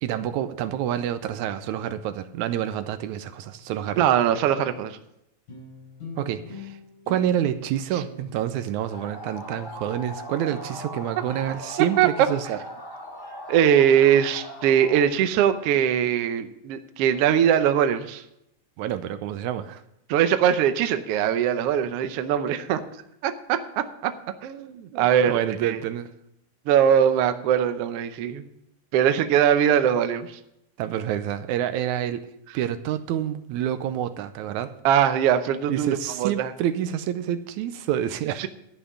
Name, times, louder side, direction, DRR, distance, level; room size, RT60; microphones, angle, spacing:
voice 1, 0.0-4.1 6.2-6.8 7.1-12.6 18.8-19.8 24.9-26.1 30.8-32.3 32.5-34.7 35.7-38.5, right 10 dB, 85° right, 11 dB, 2.1 m, -28 dB
voice 2, 4.0-5.0 7.9-8.0 12.0-12.1 13.5-18.2 20.1-22.8 23.2-24.1 24.4-25.8 26.7-28.4 28.9-30.4 30.9-31.0 34.8-36.5 38.4-38.5, right 9 dB, 70° right, 9 dB, 1.5 m, -21 dB
sound 1, 5.5-10.1, left 6 dB, 85° left, 5.6 m, -44 dB
sound 2, 8.9-15.1, equal, 20° left, 1.5 m, -39 dB
12.5 x 5.7 x 8.1 m, 0.81 s
omnidirectional pair, 3.3 m